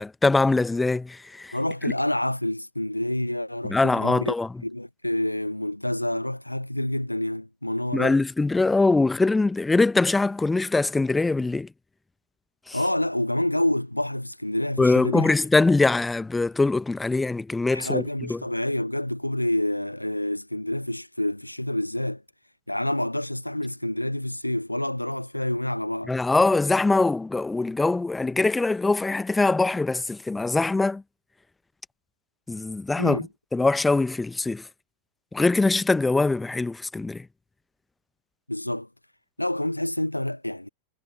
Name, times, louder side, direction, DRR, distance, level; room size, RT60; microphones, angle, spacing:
voice 1, 0.0-1.5 3.7-4.5 7.9-11.7 12.7-12.8 14.8-18.0 18.3-18.4 26.1-31.0 32.5-34.6 35.3-37.3, left 3 dB, 10° left, 0.9 m, -22 dB
voice 2, 1.5-4.3 4.6-8.2 12.7-15.4 17.7-22.2 22.7-26.1 33.0-33.3 38.5-38.9 39.4-40.7, left 1 dB, 85° left, 0.3 m, -28 dB
figure-of-eight pair, 90°, 0 cm